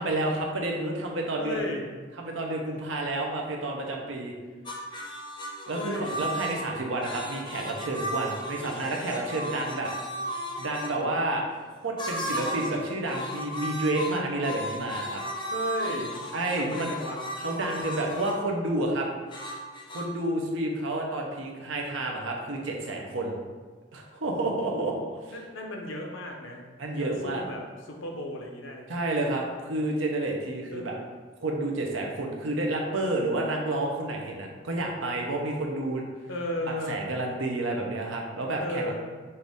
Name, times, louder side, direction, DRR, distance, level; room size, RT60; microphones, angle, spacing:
voice 1, 0.0-1.6 2.2-4.3 5.7-9.9 10.6-11.4 11.8-15.2 16.3-16.9 17.4-19.1 19.9-23.3 23.9-24.9 26.8-27.4 28.9-31.0 31.4-36.1 36.9-38.9, right 2 dB, 75° right, 0 dB, 0.8 m, -30 dB
voice 2, 1.4-1.8 5.7-6.2 6.5-6.8 15.5-16.1 16.6-17.2 24.5-25.0 25.3-27.6 27.9-28.8 30.7-31.0 36.3-37.0 38.6-39.0, left 1 dB, 85° left, 1 dB, 0.8 m, -35 dB
sound 1, 4.7-10.9 12.0-12.8 13.1-18.4 19.3-20.1, right 1 dB, 25° left, 0.6 m, -35 dB
5.7 x 2.6 x 3.5 m, 1.4 s
head